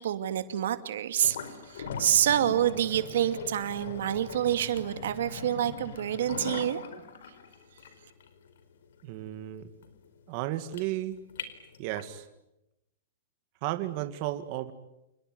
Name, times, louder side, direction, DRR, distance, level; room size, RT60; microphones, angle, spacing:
voice 1, 0.0-1.4 1.7-6.8, right 11 dB, 80° right, 10 dB, 2.5 m, -27 dB
sound 1, 1.2-12.2, left 6 dB, 85° left, 4.5 m, -41 dB
voice 2, 9.0-9.7 10.3-11.2 11.8-12.2 13.6-14.7, right 14 dB, 40° right, 8 dB, 1.9 m, -33 dB
28.5 x 21.0 x 9.4 m, 0.88 s
supercardioid pair, 160°, 0 cm